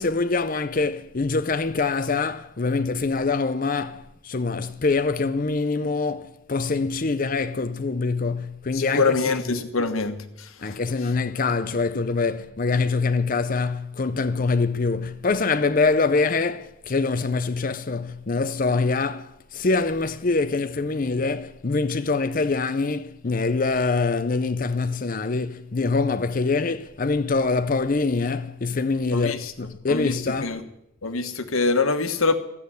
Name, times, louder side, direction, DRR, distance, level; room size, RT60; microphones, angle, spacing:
voice 1, 0.0-9.6 10.6-30.6, left 4 dB, 40° left, 0.5 m, -24 dB
voice 2, 8.7-10.8 29.1-29.5 29.9-30.6 31.0-32.3, left 4 dB, 75° left, 1.3 m, -25 dB
14.0 x 8.5 x 9.6 m
head